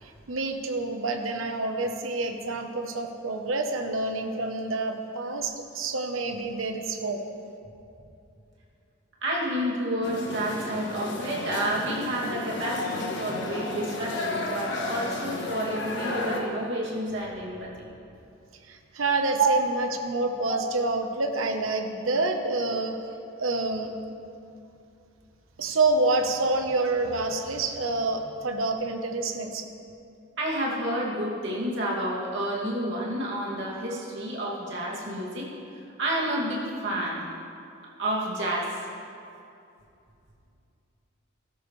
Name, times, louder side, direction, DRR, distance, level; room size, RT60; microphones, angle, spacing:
voice 1, 0.0-7.2 18.7-23.0 23.4-23.9 25.6-29.6, right 2 dB, 80° right, 5 dB, 1.0 m, -28 dB
voice 2, 9.2-17.7 19.4-19.5 20.5-20.6 30.4-35.5 36.0-37.2 38.0-38.8, right 1 dB, 60° right, -4 dB, 2.5 m, -29 dB
sound 1, 10.0-16.4, left 2 dB, 60° left, 1.5 m, -33 dB
15.5 x 12.5 x 3.3 m, 2.6 s
head